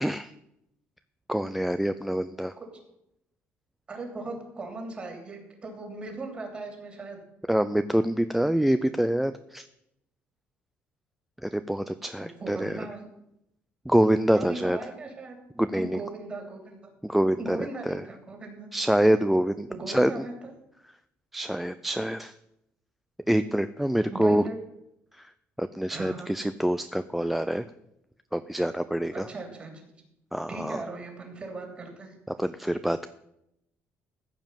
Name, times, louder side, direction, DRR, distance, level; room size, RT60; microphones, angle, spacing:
voice 1, 0.0-0.3 1.3-2.5 7.5-9.7 11.4-12.7 13.9-14.8 15.6-16.0 17.0-18.0 18.7-20.1 21.3-22.3 23.3-24.4 25.2-25.3 25.6-27.7 28.3-29.3 30.3-30.8 32.4-33.1, right 1 dB, 5° right, 11 dB, 0.4 m, -26 dB
voice 2, 3.9-7.2 12.2-13.1 14.3-15.3 15.7-16.8 17.4-18.7 19.7-20.5 24.1-24.6 25.9-26.3 29.1-29.7 30.5-32.2, right 3 dB, 25° right, 3 dB, 3.0 m, -38 dB
14.5 x 5.2 x 9.0 m, 0.82 s
cardioid pair, 155°, 5 cm